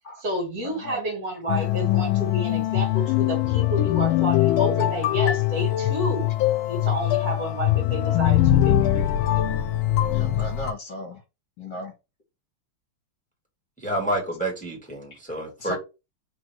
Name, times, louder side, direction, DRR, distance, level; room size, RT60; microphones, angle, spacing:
voice 1, 0.2-6.3 6.7-9.1, equal, 45° right, 2.2 m, -30 dB
sound 1, 1.5-10.7, left 13 dB, 80° left, 1.4 m, -22 dB
voice 2, 10.1-11.2 11.6-11.9 15.6-15.8, equal, 60° left, 1.5 m, -35 dB
voice 3, 13.8-15.8, right 1 dB, 5° left, 1.3 m, -29 dB
3.8 x 2.5 x 4.7 m
omnidirectional pair, 2.2 m